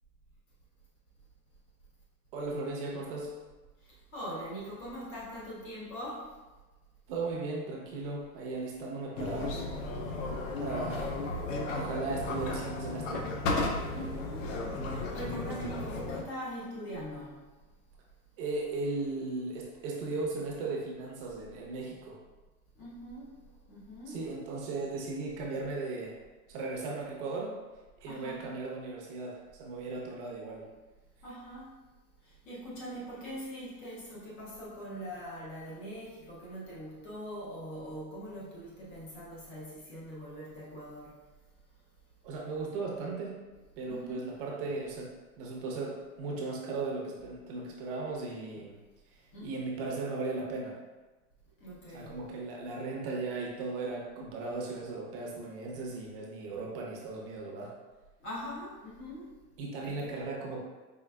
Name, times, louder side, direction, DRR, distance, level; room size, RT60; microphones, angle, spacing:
voice 1, 2.3-3.4 7.1-9.6 10.6-11.1 11.7-13.3 18.4-22.2 24.1-26.1 26.5-27.6 28.0-30.7 42.2-43.4 43.8-48.7 49.1-50.8 51.9-57.7 59.6-60.6, right 3 dB, 35° right, -2 dB, 0.7 m, -37 dB
voice 2, 3.8-6.4 13.9-17.5 22.7-24.2 28.1-28.4 31.2-31.8 32.2-41.2 43.9-44.3 49.3-49.7 51.6-52.2 58.2-59.4 59.8-60.1, equal, 15° left, -6 dB, 0.4 m, -42 dB
sound 1, 9.2-16.2, left 2 dB, 55° left, 0.6 m, -34 dB
4.7 x 3.2 x 2.2 m, 1.2 s
supercardioid pair, 160°, 47 cm